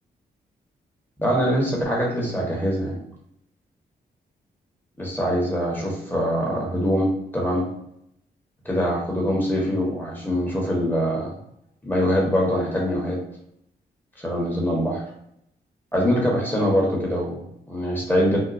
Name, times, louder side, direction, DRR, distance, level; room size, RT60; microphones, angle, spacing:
voice 1, 1.2-3.0 5.0-7.7 8.6-11.3 11.8-13.2 14.2-15.0 15.9-18.4, equal, 10° left, -2 dB, 1.1 m, -23 dB
2.9 x 2.2 x 2.5 m, 0.73 s
supercardioid pair, 45°, 20 cm